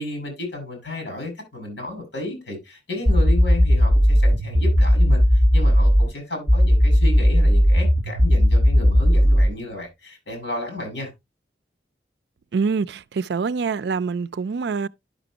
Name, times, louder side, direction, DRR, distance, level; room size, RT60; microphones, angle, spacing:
voice 1, 0.0-11.1, left 2 dB, 75° left, 5.3 m, -32 dB
sound 1, 3.1-6.1 6.5-9.5, equal, 20° right, 2.6 m, -16 dB
voice 2, 12.5-14.9, right 5 dB, 70° right, 0.4 m, -25 dB
11.0 x 6.0 x 2.8 m
head